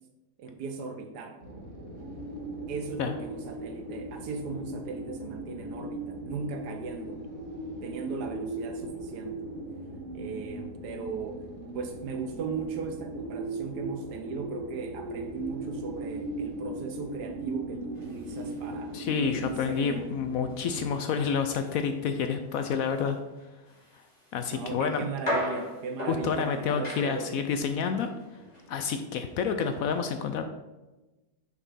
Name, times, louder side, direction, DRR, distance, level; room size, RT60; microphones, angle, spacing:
voice 1, 0.4-1.4 2.7-7.2 7.8-9.4 10.1-11.5 11.7-18.9 19.3-20.1 24.5-27.3, right 5 dB, 80° right, 5 dB, 1.4 m, -37 dB
sound 1, 1.4-20.9, right 2 dB, 60° right, 1.8 m, -38 dB
sound 2, 17.9-29.8, equal, 25° left, 2.3 m, -40 dB
voice 2, 18.9-23.2 24.3-25.1 26.1-28.1 28.7-30.4, left 6 dB, 70° left, 7 dB, 0.9 m, -29 dB
6.0 x 5.4 x 4.1 m, 1.1 s
omnidirectional pair, 1.8 m